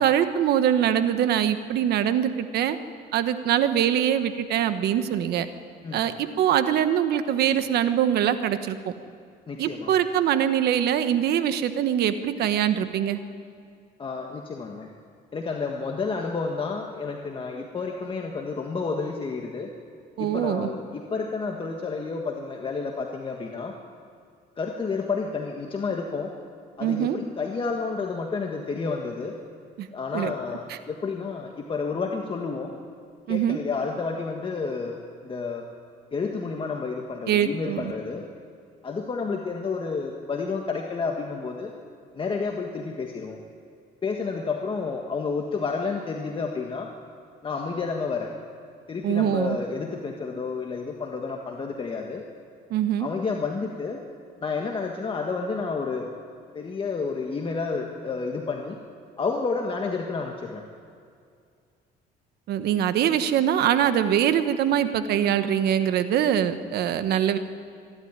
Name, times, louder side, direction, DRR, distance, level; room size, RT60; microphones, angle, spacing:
voice 1, 0.0-2.8 3.1-5.5 5.9-8.8 9.6-13.2 20.2-20.7 26.8-27.2 29.8-29.9 30.1-30.3 30.7-30.8 33.3-33.6 37.3-37.9 49.0-49.6 52.7-53.1 62.5-67.4, right 10 dB, 70° right, 10 dB, 1.3 m, -23 dB
voice 2, 9.5-9.9 14.0-14.9 15.3-19.7 20.2-23.7 24.6-26.3 26.8-29.3 29.9-32.7 33.3-35.7 36.1-38.2 38.8-41.7 42.1-43.4 44.0-46.9 47.4-48.3 48.9-52.2 53.0-54.0 54.4-56.1 56.5-58.8 59.2-60.6, left 4 dB, 30° left, 1 dB, 1.6 m, -30 dB
25.5 x 12.0 x 9.7 m, 2.3 s
cardioid pair, 110°, 17 cm